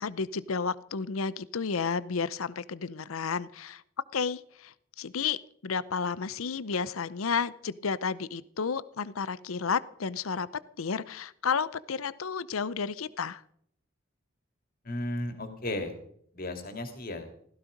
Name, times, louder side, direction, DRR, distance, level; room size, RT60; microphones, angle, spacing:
voice 1, 0.0-3.8 4.1-5.4 5.6-10.5 10.8-13.4, left 5 dB, 85° left, 18 dB, 0.7 m, -32 dB
voice 2, 14.8-16.0 16.3-17.3, left 1 dB, 45° left, 6 dB, 2.7 m, -34 dB
16.5 x 14.5 x 5.2 m, 0.66 s
head